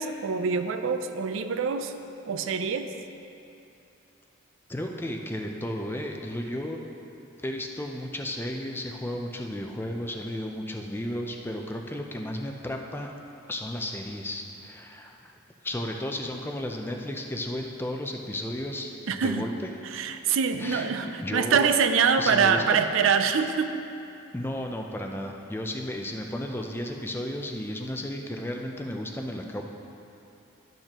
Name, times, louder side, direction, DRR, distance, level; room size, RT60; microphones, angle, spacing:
voice 1, 0.0-1.9 2.3-2.9 19.1-19.5 19.8-23.8, right 6 dB, 80° right, 8 dB, 0.4 m, -25 dB
voice 2, 4.7-6.8 7.4-13.1 13.5-15.3 15.6-19.7 20.6-21.7 22.2-22.6 24.3-29.6, left 1 dB, 10° left, 2 dB, 0.4 m, -33 dB
11.5 x 6.6 x 2.9 m, 2.9 s
head